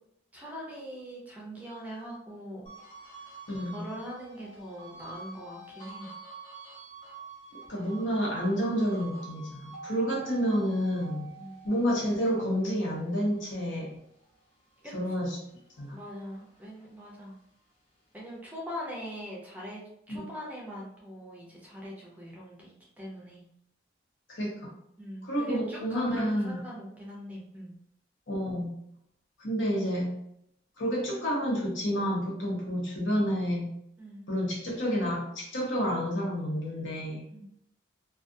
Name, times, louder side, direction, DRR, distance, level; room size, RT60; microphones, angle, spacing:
voice 1, 0.3-2.7 3.6-6.1 11.4-11.6 14.8-14.9 15.9-17.4 18.1-23.4 25.0-27.7 34.0-34.2 37.3-37.5, equal, 10° right, -4 dB, 0.5 m, -42 dB
sound 1, 2.7-15.3 15.7-17.4, right 4 dB, 30° left, 0.7 m, -48 dB
voice 2, 3.5-3.8 7.7-11.3 11.6-13.9 14.9-15.4 15.8-16.0 20.1-20.2 24.3-24.7 25.2-26.6 28.3-28.7 29.4-30.1 30.8-33.7 34.3-37.2, equal, 80° left, -3 dB, 0.9 m, -29 dB
2.4 x 2.3 x 2.6 m, 0.74 s
head